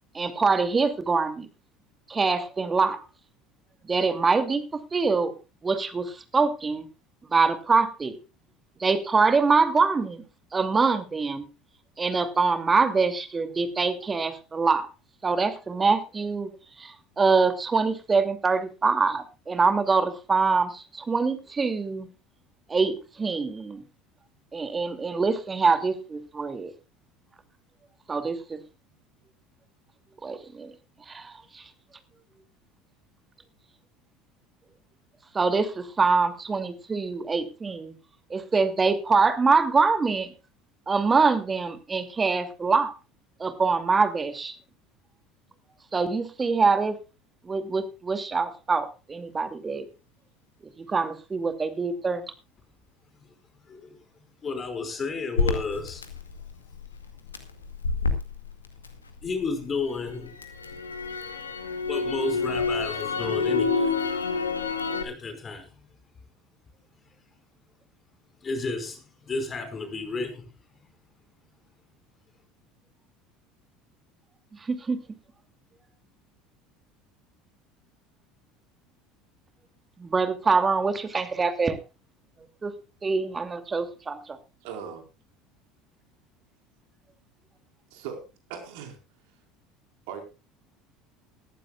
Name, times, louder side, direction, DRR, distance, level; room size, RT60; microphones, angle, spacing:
voice 1, 0.1-1.5 2.1-3.0 3.8-4.6 4.9-5.3 5.6-6.9 7.2-8.2 8.8-10.2 10.5-11.5 12.0-14.9 15.2-16.5 16.8-22.1 22.7-23.8 24.5-26.7 28.1-28.6 30.2-30.7 31.1-31.7 35.3-37.9 38.3-40.3 40.9-42.9 43.4-44.6 45.9-47.0 47.4-49.9 50.8-52.3 74.6-75.0 80.0-81.8 82.6-84.4, right 4 dB, 25° right, 9 dB, 2.6 m, -24 dB
voice 2, 54.4-56.0 59.2-60.3 61.9-63.9 65.0-65.7 68.4-70.4, left 3 dB, 30° left, 8 dB, 5.2 m, -32 dB
Crackle, 55.4-59.5 59.9-65.0, left 4 dB, 90° left, 2.1 m, -28 dB
voice 3, 84.6-85.0 87.9-88.2 88.5-89.0 90.1-90.2, right 7 dB, 65° right, 5 dB, 4.6 m, -38 dB
19.5 x 14.5 x 2.4 m, 0.30 s
figure-of-eight pair, 70°, 0 cm